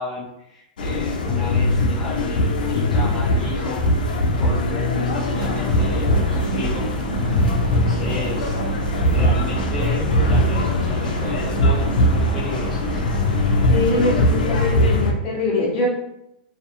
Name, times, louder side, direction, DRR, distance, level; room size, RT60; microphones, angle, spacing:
voice 1, 0.0-3.8 4.4-4.7 5.0-6.9 7.5-8.6 9.1-13.0, left 2 dB, 5° left, -10 dB, 0.3 m, -33 dB
sound 1, 0.8-15.1, left 1 dB, 80° left, 0.5 m, -21 dB
sound 2, 5.3-14.0, right 4 dB, 70° right, 0.5 m, -31 dB
voice 2, 13.7-15.9, left 2 dB, 25° left, -4 dB, 0.8 m, -23 dB
2.4 x 2.4 x 2.7 m, 0.84 s
supercardioid pair, 170°, 5 cm